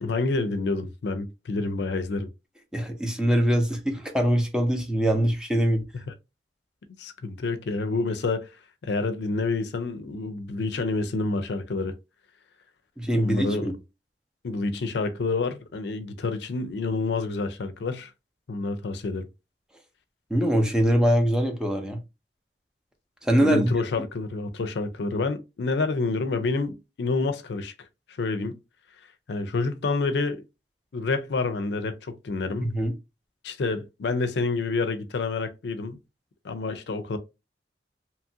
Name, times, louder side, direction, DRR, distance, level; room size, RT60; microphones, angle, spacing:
voice 1, 0.0-2.3 6.1-6.2 7.0-8.5 8.8-11.9 13.1-13.7 14.4-18.1 18.5-19.3 23.4-27.7 28.1-28.6 29.3-30.4 30.9-32.7 33.4-36.0 36.4-37.2, left 3 dB, 70° left, 0.4 m, -28 dB
voice 2, 2.7-5.8 13.0-13.7 20.3-22.0 23.2-23.7 32.6-32.9, equal, 5° right, 0.5 m, -23 dB
2.9 x 2.5 x 2.7 m
head